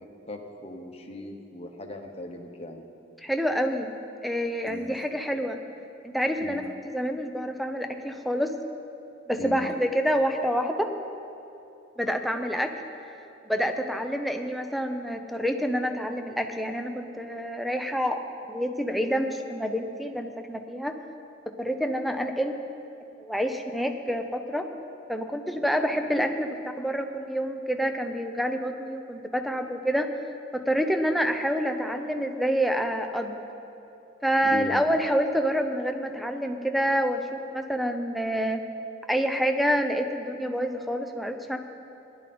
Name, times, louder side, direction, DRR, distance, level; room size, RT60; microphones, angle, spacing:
voice 1, 0.3-2.9 4.6-5.0 6.4-6.6 9.4-9.7 34.5-34.8, left 2 dB, 30° left, 3 dB, 1.1 m, -37 dB
voice 2, 3.2-3.9 4.2-5.6 6.0-6.6 6.9-8.6 9.3-10.9 12.0-12.7 13.4-18.2 18.5-21.0 21.6-22.6 23.2-24.7 25.1-26.5 26.8-30.1 30.5-33.4 34.2-38.6 39.1-41.6, equal, ahead, 6 dB, 0.6 m, -27 dB
17.5 x 11.5 x 4.3 m, 2.8 s
head